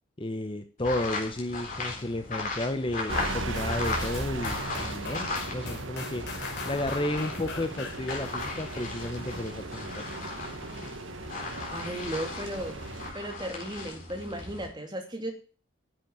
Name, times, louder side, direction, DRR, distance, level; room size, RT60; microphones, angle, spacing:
voice 1, 0.2-6.2 6.7-10.0, left 1 dB, 25° left, 7 dB, 0.9 m, -32 dB
sound 1, 0.8-5.8 6.1-14.7, left 3 dB, 40° left, 3.9 m, -37 dB
sound 2, 3.1-13.1, right 2 dB, 70° right, 1.4 m, -38 dB
sound 3, 3.5-9.4 9.9-10.0, left 3 dB, 60° left, 3.2 m, -41 dB
voice 2, 11.7-12.8 13.1-15.3, right 1 dB, 20° right, 3 dB, 2.8 m, -35 dB
10.5 x 7.7 x 9.5 m, 0.39 s
head